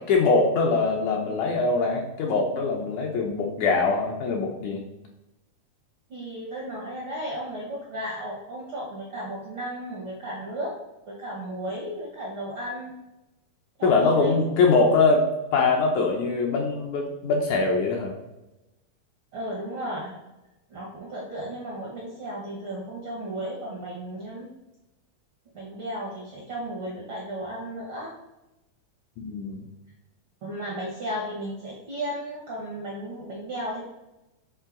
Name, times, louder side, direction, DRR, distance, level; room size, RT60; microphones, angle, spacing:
voice 1, 0.1-4.8 13.8-15.2 15.5-18.1 29.2-29.6, left 4 dB, 75° left, 1 dB, 1.9 m, -22 dB
voice 2, 6.1-10.7 11.1-12.9 13.8-14.3 19.3-20.1 20.7-24.5 25.5-28.1 30.4-33.8, right 1 dB, 60° right, -4 dB, 1.4 m, -34 dB
7.4 x 3.8 x 3.7 m, 0.97 s
omnidirectional pair, 3.9 m